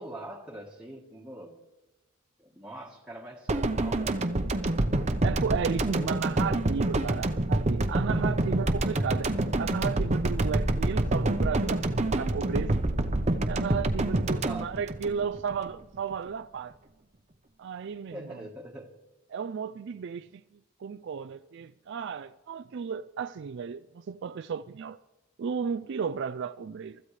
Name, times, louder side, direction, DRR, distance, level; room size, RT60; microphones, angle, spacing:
voice 1, 0.0-1.6 2.4-4.7 5.9-6.2 14.3-14.8 18.1-18.9, right 1 dB, 5° right, 1.4 m, -43 dB
sound 1, 3.5-15.7 15.9-16.1, right 1 dB, 30° right, 0.8 m, -27 dB
voice 2, 5.2-9.3 9.6-12.8 13.4-16.7 17.6-18.4 19.3-20.4 20.8-25.0 25.4-27.0, right 6 dB, 55° right, 0.4 m, -34 dB
23.5 x 14.0 x 3.3 m
head